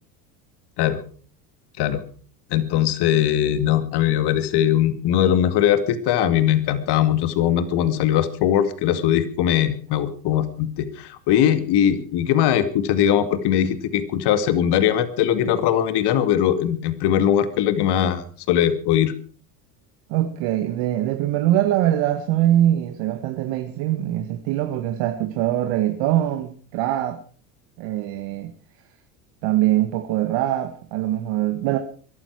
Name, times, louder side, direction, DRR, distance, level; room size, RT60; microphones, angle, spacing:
voice 1, 2.5-19.1, left 10 dB, 55° left, 2.3 m, -20 dB
voice 2, 20.1-27.2 27.8-28.5 29.4-31.8, right 13 dB, 65° right, 1.8 m, -22 dB
22.5 x 12.0 x 4.7 m
hypercardioid pair, 90°, 47 cm